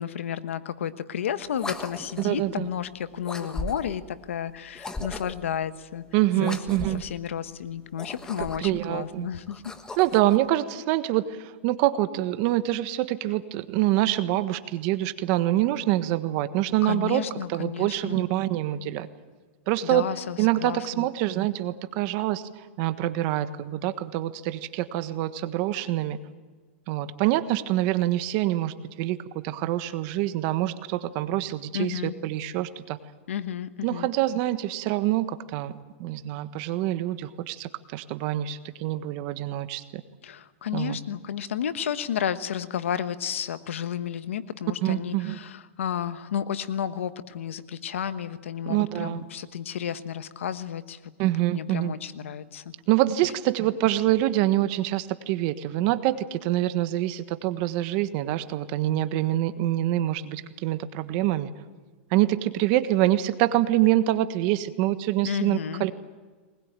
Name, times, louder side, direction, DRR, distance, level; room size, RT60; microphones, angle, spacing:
voice 1, 0.0-6.0 6.4-6.6 6.9-9.6 16.8-18.3 19.8-21.1 31.7-32.1 33.3-34.1 40.2-51.0 51.5-52.7 65.2-65.8, left 9 dB, 90° left, 12 dB, 1.3 m, -32 dB
sound 1, 1.5-2.4 3.2-4.0 4.7-5.5 6.4-7.1 7.9-8.8 9.5-10.4, left 2 dB, 10° left, 1.3 m, -37 dB
voice 2, 2.2-2.7 6.1-7.0 8.4-9.3 10.0-17.2 17.5-19.1 19.7-20.1 20.4-26.2 26.9-33.0 33.8-35.7 36.0-40.0 40.7-41.0 44.8-45.4 48.7-49.2 51.2-51.9 52.9-61.5 62.1-65.9, right 14 dB, 45° right, 11 dB, 1.4 m, -25 dB
22.0 x 20.5 x 9.0 m, 1.4 s
supercardioid pair, 145°, 7 cm